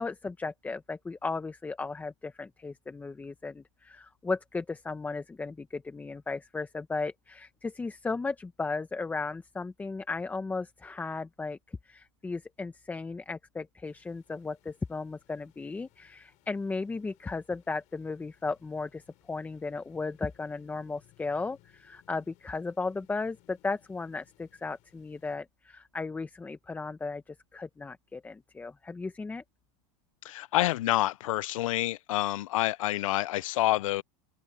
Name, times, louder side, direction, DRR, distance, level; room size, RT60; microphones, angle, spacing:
voice 1, 0.0-29.4, left 3 dB, 10° left, 1.0 m, -35 dB
sound 1, 13.8-25.4, left 21 dB, 45° left, 7.1 m, -66 dB
voice 2, 30.2-34.0, left 16 dB, 80° left, 0.6 m, -28 dB
supercardioid pair, 135°, 17 cm